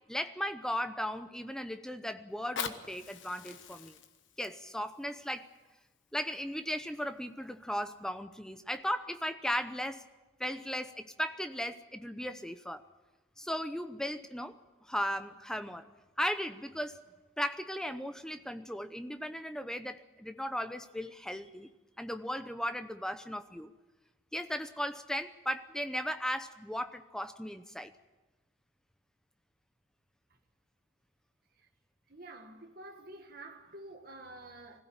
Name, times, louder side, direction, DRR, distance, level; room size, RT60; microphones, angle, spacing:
voice 1, 0.1-4.0 4.4-5.5 6.1-10.0 10.4-12.8 13.4-15.9 16.2-17.0 17.4-21.7 22.0-23.7 24.3-27.9, equal, 5° left, 0.7 m, -36 dB
Fire, 2.3-7.3 7.9-8.0, left 6 dB, 70° left, 1.3 m, -45 dB
voice 2, 32.1-34.8, right 2 dB, 45° right, 1.8 m, -49 dB
21.0 x 16.5 x 9.0 m
head